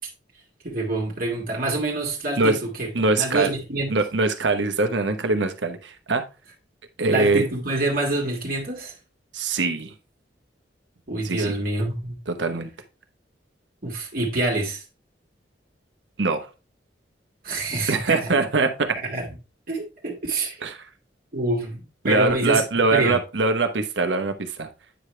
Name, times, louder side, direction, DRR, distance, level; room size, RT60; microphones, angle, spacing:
voice 1, 0.6-2.9 3.2-4.0 7.1-8.9 11.1-12.2 13.8-14.8 17.4-18.3 19.0-19.3 19.7-20.6 21.3-22.6 22.9-23.2, right 2 dB, 50° right, 1.5 m, -26 dB
voice 2, 2.9-3.5 3.9-6.2 7.0-7.5 9.3-9.9 11.2-11.5 12.3-12.7 16.2-16.5 17.9-19.0 20.6-20.7 22.0-24.7, right 3 dB, 80° right, 1.0 m, -22 dB
9.1 x 5.0 x 3.2 m
head